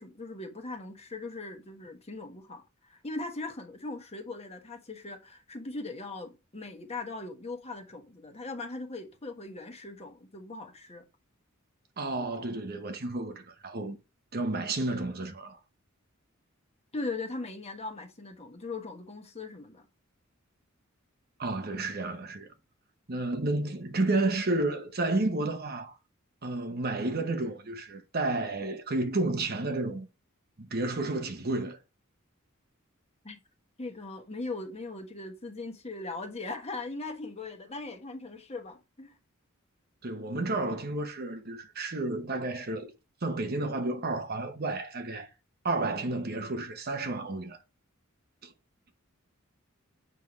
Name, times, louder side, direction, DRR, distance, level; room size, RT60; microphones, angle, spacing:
voice 1, 0.0-11.0 16.9-19.9 33.2-33.4 33.8-39.1, left 3 dB, 30° left, 1.3 m, -39 dB
voice 2, 12.0-14.0 14.3-15.6 21.4-22.5 23.1-25.9 26.4-30.1 30.6-31.8 40.0-42.9 43.2-45.3 45.6-47.6 48.4-48.5, right 2 dB, 50° right, 1.0 m, -31 dB
7.5 x 5.6 x 3.1 m
head